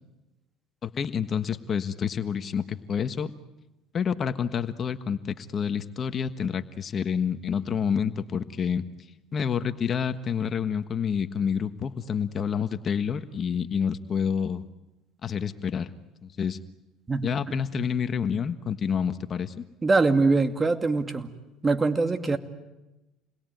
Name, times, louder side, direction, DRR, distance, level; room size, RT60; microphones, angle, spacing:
voice 1, 0.8-3.3 3.9-8.8 9.3-14.6 15.2-15.9 16.2-16.6 17.2-19.6, left 7 dB, 40° left, 10 dB, 1.4 m, -28 dB
voice 2, 19.8-21.3 21.6-22.4, right 3 dB, 25° right, 8 dB, 2.4 m, -23 dB
28.5 x 21.5 x 9.3 m, 1.0 s
supercardioid pair, 85°, 0 cm